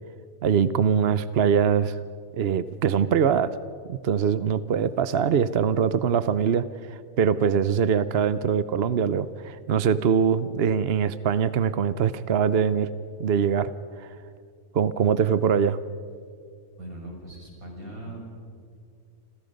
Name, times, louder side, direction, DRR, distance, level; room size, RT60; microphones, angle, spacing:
voice 1, 0.4-2.0 2.4-3.5 3.9-12.9 13.2-13.7 14.0-14.1 14.7-15.8, right 7 dB, 55° right, 14 dB, 0.8 m, -23 dB
voice 2, 16.8-18.3, right 1 dB, 70° right, 0 dB, 7.0 m, -40 dB
29.5 x 27.0 x 5.3 m, 2.3 s
omnidirectional pair, 1.6 m